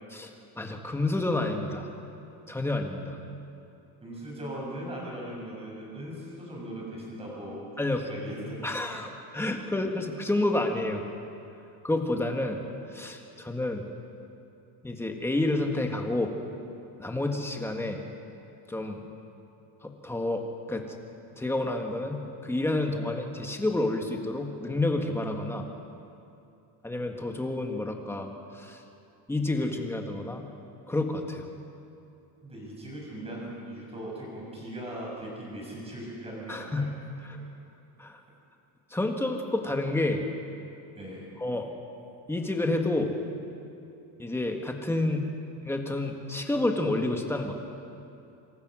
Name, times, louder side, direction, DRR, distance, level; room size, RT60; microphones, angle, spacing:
voice 1, 0.1-1.9 2.5-3.2 7.8-8.1 8.6-11.0 11.8-12.6 12.9-13.9 14.8-16.3 17.0-18.0 18.7-19.0 19.8-20.9 21.4-25.7 26.8-28.8 29.3-30.5 30.9-31.5 36.5-36.9 37.2-37.4 38.0-38.2 38.9-40.2 41.4-41.7 42.3-43.1 44.2-45.3 45.6-47.5, left 2 dB, 5° left, 3 dB, 1.7 m, -29 dB
voice 2, 4.0-7.6 8.0-8.7 32.4-36.9 41.0-41.3, right 1 dB, 15° right, -3 dB, 7.3 m, -39 dB
27.0 x 26.5 x 6.3 m, 2.7 s
cardioid pair, 180°, 42 cm